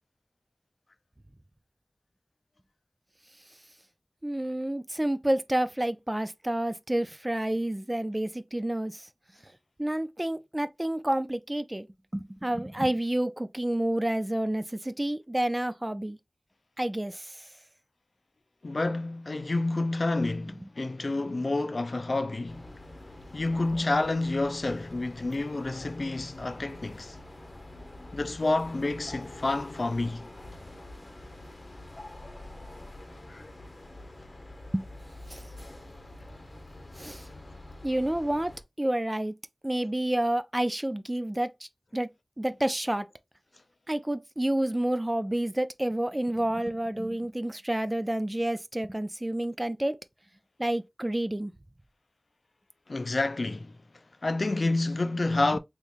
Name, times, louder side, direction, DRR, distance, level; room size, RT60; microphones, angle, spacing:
voice 1, 4.2-9.1 9.8-11.9 12.1-16.2 16.8-17.5 34.7-34.8 35.3-35.5 37.0-37.3 37.8-38.5 38.8-39.4 39.6-42.1 42.4-43.1 43.9-50.0 50.6-51.5, right 1 dB, 25° right, 0.4 m, -29 dB
voice 2, 18.6-22.7 23.3-27.2 28.1-30.3 33.3-33.4 52.9-53.8 54.2-55.6, left 2 dB, 80° left, 0.4 m, -29 dB
sound 1, 22.5-38.6, left 1 dB, 60° left, 0.8 m, -46 dB
3.5 x 3.1 x 2.4 m
wide cardioid pair, 55°, 0 cm